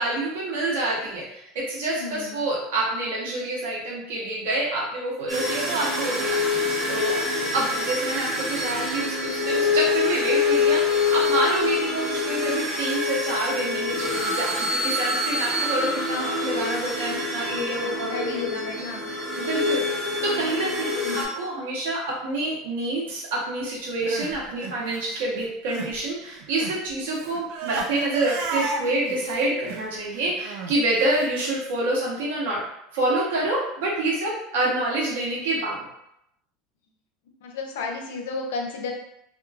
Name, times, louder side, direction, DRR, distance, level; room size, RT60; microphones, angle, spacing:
voice 1, 0.0-6.6 6.9-7.2 7.5-18.2 18.5-19.8 20.2-32.6 32.9-35.8, right 2 dB, 90° right, -4 dB, 1.0 m, -27 dB
voice 2, 1.9-2.4 17.5-19.0 21.0-21.2 37.4-38.9, left 4 dB, 90° left, 2 dB, 0.5 m, -33 dB
sound 1, 5.3-21.2, left 3 dB, 20° right, 0.9 m, -26 dB
Crying sobbing, 23.8-26.0 26.2-31.3, right 4 dB, 70° right, 0.4 m, -34 dB
2.9 x 2.3 x 2.3 m, 0.78 s
supercardioid pair, 140°, 0 cm